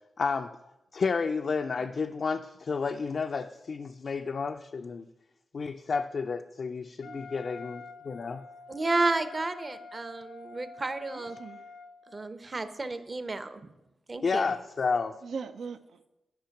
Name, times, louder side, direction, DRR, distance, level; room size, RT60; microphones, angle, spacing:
voice 1, 0.2-0.5 0.9-5.1 5.5-8.4 14.2-15.2, left 5 dB, 55° left, 0.4 m, -31 dB
Wind instrument woodwind instrument, 7.0-12.3, left 4 dB, 90° left, 0.8 m, -47 dB
voice 2, 8.7-11.4 12.1-13.7 14.1-14.5, right 3 dB, 35° right, 0.7 m, -31 dB
voice 3, 11.1-11.7 15.2-16.1, right 5 dB, 80° right, 0.5 m, -41 dB
10.5 x 5.0 x 5.9 m
cardioid pair, 70°, 0 cm